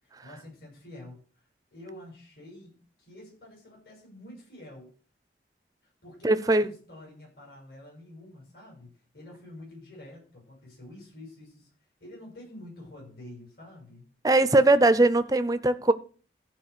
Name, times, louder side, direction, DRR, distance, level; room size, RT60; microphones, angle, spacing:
voice 1, 0.0-1.4 1.7-4.9 5.8-11.7 12.0-14.0, left 1 dB, 60° left, 6.3 m, -48 dB
voice 2, 6.2-6.7 14.2-15.9, right 2 dB, 20° right, 0.6 m, -20 dB
14.5 x 4.8 x 6.7 m
head